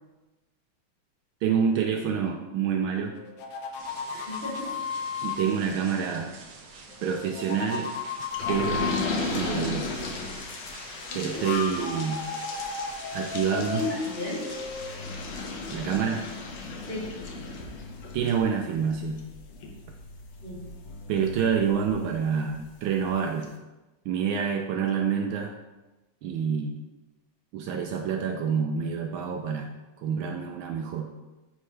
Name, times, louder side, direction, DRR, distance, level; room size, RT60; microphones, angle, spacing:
voice 1, 1.4-3.2 5.2-6.3 7.0-7.9 8.5-9.9 11.1-12.2 13.1-13.9 15.7-16.2 18.1-19.2 21.1-23.5 24.1-25.5 26.2-26.8 27.5-29.7 30.0-31.1, right 7 dB, 75° right, 3 dB, 1.3 m, -27 dB
sound 1, 3.2-5.4 6.9-9.0 11.1-15.1, left 5 dB, 85° left, 1.7 m, -34 dB
sound 2, 3.8-14.6, right 3 dB, 60° right, 1.3 m, -48 dB
voice 2, 4.1-4.8 11.1-11.4 13.5-14.5 16.9-17.1 20.4-20.6, left 2 dB, 25° left, -9 dB, 2.8 m, -34 dB
sound 3, 8.3-22.6 23.1-23.2 23.4-23.5, left 3 dB, 65° left, 1.6 m, -36 dB
9.7 x 4.5 x 3.2 m, 1.1 s
omnidirectional pair, 2.4 m